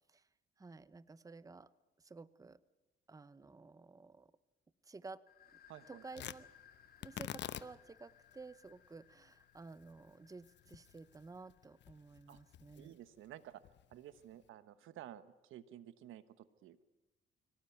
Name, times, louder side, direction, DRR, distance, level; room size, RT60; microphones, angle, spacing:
voice 1, 0.6-1.7 2.0-2.6 3.1-4.3 4.8-5.2 5.9-6.5 7.0-13.0, right 3 dB, 15° right, 16 dB, 0.8 m, -53 dB
sound 1, 5.3-12.7, left 9 dB, 50° left, 2.8 m, -66 dB
voice 2, 5.7-6.0 12.3-12.4 12.8-13.6 13.9-16.8, right 12 dB, 85° right, 13 dB, 1.2 m, -53 dB
Tearing, 6.1-14.5, left 11 dB, 65° left, 0.9 m, -51 dB
24.0 x 17.5 x 9.4 m, 1.1 s
cardioid pair, 90°, 20 cm